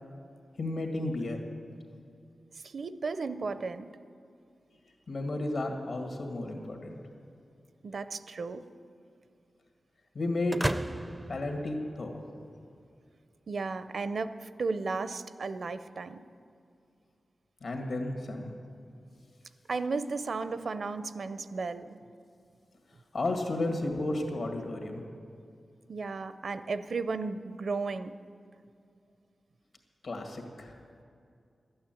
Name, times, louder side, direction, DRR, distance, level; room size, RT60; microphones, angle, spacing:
voice 1, 0.6-1.4 5.1-7.0 10.1-10.6 11.3-12.2 17.6-18.5 23.1-25.0 30.0-30.7, left 2 dB, 70° left, 3 dB, 1.9 m, -33 dB
voice 2, 2.6-3.9 7.8-8.7 13.5-16.2 19.7-22.0 25.9-28.1, right 4 dB, 65° right, 12 dB, 0.6 m, -34 dB
sound 1, 10.5-12.4, right 1 dB, 15° right, 0.4 m, -35 dB
12.5 x 8.8 x 9.0 m, 2.4 s
wide cardioid pair, 95°, 0 cm